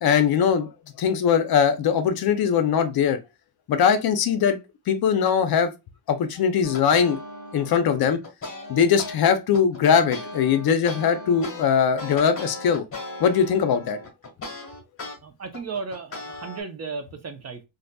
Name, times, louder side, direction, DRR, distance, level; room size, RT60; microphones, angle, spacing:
voice 1, 0.0-0.7 1.0-3.2 3.7-4.6 4.9-5.7 6.1-7.2 7.5-8.2 8.7-12.8 13.2-14.0, left 7 dB, 55° left, 0.6 m, -21 dB
sound 1, 6.6-9.2 9.5-15.1 15.5-16.6, left 2 dB, 30° left, 1.5 m, -37 dB
voice 2, 15.2-17.6, right 4 dB, 35° right, 0.7 m, -35 dB
3.9 x 2.7 x 2.2 m
cardioid pair, 135°, 46 cm